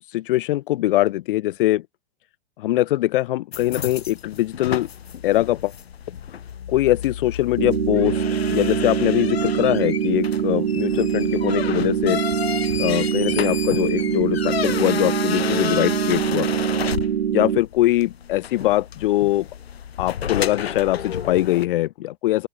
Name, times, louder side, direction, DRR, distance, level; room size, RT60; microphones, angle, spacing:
voice 1, 0.1-1.8 2.6-4.9 5.2-5.7 6.7-8.2 8.5-12.2 12.8-16.5 17.3-19.5 20.0-22.5, left 16 dB, 55° left, 1.9 m, -22 dB
sound 1, 3.5-21.6, left 8 dB, 75° left, 7.4 m, -31 dB
sound 2, 7.6-17.6, right 9 dB, 80° right, 0.8 m, -23 dB
open air
hypercardioid pair, 110°, 31 cm